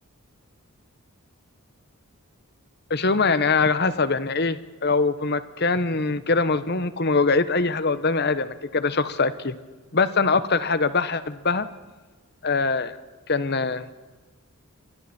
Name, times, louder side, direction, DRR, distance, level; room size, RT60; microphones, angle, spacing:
voice 1, 2.9-9.5 9.9-11.7 12.4-12.9 13.3-13.8, left 4 dB, 50° left, 13 dB, 1.2 m, -23 dB
29.0 x 24.0 x 4.5 m, 1.3 s
head